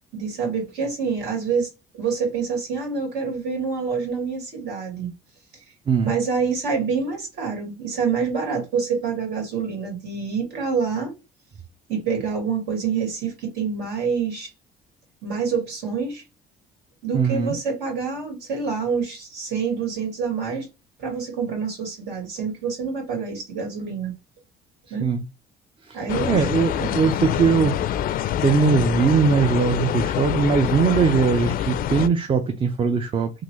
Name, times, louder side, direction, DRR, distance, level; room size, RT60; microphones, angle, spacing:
voice 1, 0.1-1.7 1.9-5.1 5.5-5.6 6.0-11.1 11.9-14.5 15.2-16.2 17.0-20.7 21.0-24.1 24.9-25.1 25.9-27.0, right 5 dB, 80° right, 2.1 m, -27 dB
voice 2, 17.1-17.6 25.0-25.2 25.9-26.0 26.3-27.8 28.4-33.3, right 5 dB, 30° right, 0.5 m, -20 dB
sound 1, 26.1-32.1, left 11 dB, 60° left, 0.4 m, -25 dB
3.8 x 2.5 x 3.0 m
cardioid pair, 110°, 17 cm